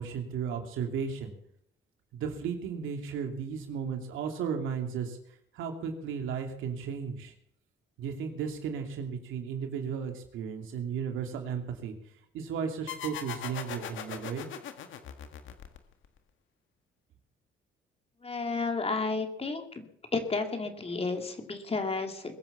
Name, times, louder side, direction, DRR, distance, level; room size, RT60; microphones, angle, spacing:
voice 1, 0.0-1.3 2.1-5.2 5.5-7.3 8.0-11.9 12.3-14.5, right 6 dB, 85° right, 4 dB, 2.7 m, -34 dB
sound 1, 12.9-16.2, left 8 dB, 75° left, 1.8 m, -40 dB
voice 2, 18.2-19.8 20.1-22.3, left 3 dB, 30° left, 5 dB, 3.0 m, -32 dB
21.5 x 8.7 x 7.2 m, 0.72 s
cardioid pair, 90°, 20 cm